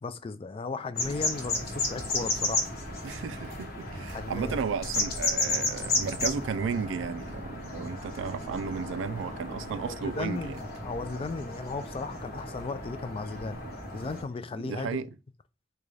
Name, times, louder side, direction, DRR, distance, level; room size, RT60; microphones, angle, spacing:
voice 1, 0.0-2.7 4.1-4.6 9.8-13.6 13.9-15.0, left 3 dB, 30° left, 0.3 m, -36 dB
sound 1, 0.9-14.2, left 2 dB, 55° left, 1.0 m, -33 dB
voice 2, 3.0-10.5 14.6-15.1, right 6 dB, 90° right, 0.3 m, -34 dB
3.8 x 2.3 x 3.2 m
head